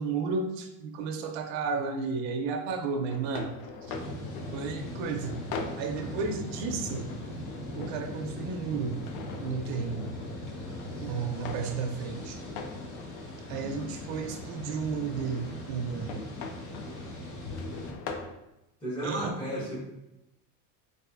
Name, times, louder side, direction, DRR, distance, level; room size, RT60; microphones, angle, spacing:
voice 1, 0.0-3.5 3.8-3.9 4.5-5.4 5.8-7.1 7.8-9.0 9.4-10.1 11.0-12.4 13.5-16.2 19.0-19.4, right 5 dB, 65° right, 4 dB, 0.5 m, -33 dB
sound 1, 3.1-18.3, left 4 dB, 65° left, 0.5 m, -43 dB
sound 2, 3.9-17.9, left 1 dB, 85° left, 1.1 m, -40 dB
voice 2, 10.6-11.1 13.5-14.2 18.8-19.8, right 1 dB, 15° left, -6 dB, 0.7 m, -37 dB
4.0 x 2.5 x 2.4 m, 0.91 s
cardioid pair, 180°, 40 cm